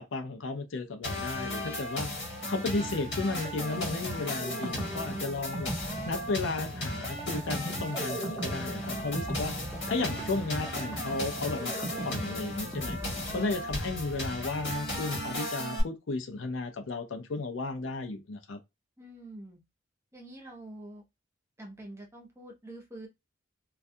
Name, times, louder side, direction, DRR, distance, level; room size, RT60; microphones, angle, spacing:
voice 1, 0.0-2.1 2.5-5.7 6.1-9.5 9.9-13.0 13.3-18.6, left 3 dB, 85° left, 0.6 m, -34 dB
sound 1, 1.0-15.8, left 1 dB, 65° left, 1.2 m, -36 dB
sound 2, 3.4-14.0, right 1 dB, 10° left, 0.9 m, -39 dB
sound 3, 10.7-15.4, equal, 45° left, 0.7 m, -49 dB
voice 2, 19.0-19.6 20.1-21.0 21.6-23.1, right 1 dB, 15° right, 0.7 m, -46 dB
2.4 x 2.2 x 2.6 m
head